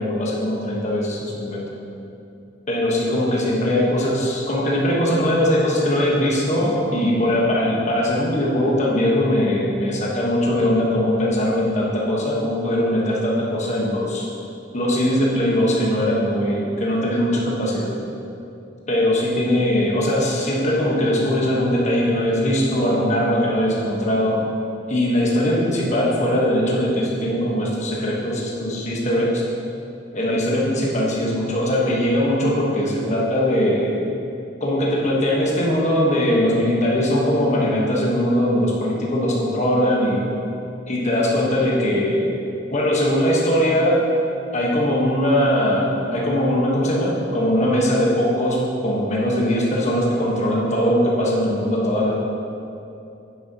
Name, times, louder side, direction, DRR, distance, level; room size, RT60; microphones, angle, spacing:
voice 1, 0.0-1.6 2.7-14.3 14.7-17.9 18.9-24.4 24.9-29.4 30.1-34.0 34.6-40.3 40.9-42.4 42.7-44.0 44.5-52.1, equal, 40° left, -3 dB, 1.3 m, -20 dB
9.8 x 6.3 x 2.9 m, 2.7 s
head